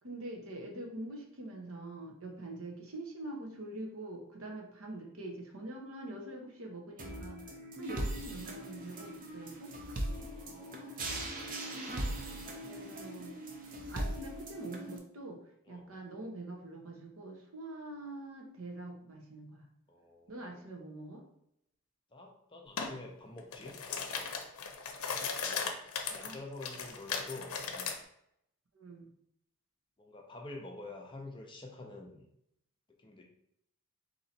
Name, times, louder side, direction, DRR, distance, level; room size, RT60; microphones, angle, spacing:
voice 1, 0.0-9.7 12.6-13.3 13.9-15.4 15.7-19.7 20.3-21.3 26.1-26.4 28.7-29.1, right 2 dB, 70° right, 2 dB, 0.9 m, -44 dB
sound 1, 7.0-15.0, right 1 dB, 40° right, 0.6 m, -40 dB
voice 2, 10.1-11.2 15.6-16.0 19.9-20.7 22.1-24.3 25.3-25.9 26.1-28.0 30.0-32.3 33.0-33.2, left 2 dB, 20° left, 1 dB, 0.6 m, -48 dB
sound 2, 22.8-22.9 23.4-28.0, left 6 dB, 70° left, 0.6 m, -37 dB
4.1 x 2.9 x 4.1 m, 0.76 s
head